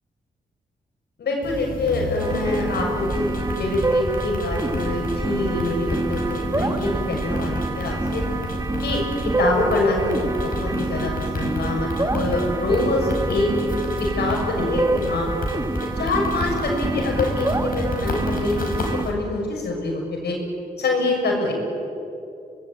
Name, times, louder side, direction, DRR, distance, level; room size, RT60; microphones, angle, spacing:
voice 1, 1.2-8.2 8.8-9.0 9.4-13.5 14.2-15.3 16.0-18.7 19.0-20.3 20.8-21.5, left 2 dB, 85° left, 0 dB, 6.6 m, -25 dB
sound 1, 1.4-19.1, left 2 dB, 60° left, 5.5 m, -32 dB
sound 2, 2.2-19.1, right 2 dB, 20° right, 2.1 m, -27 dB
25.5 x 20.0 x 9.2 m, 2.6 s
cardioid pair, 85°, 17 cm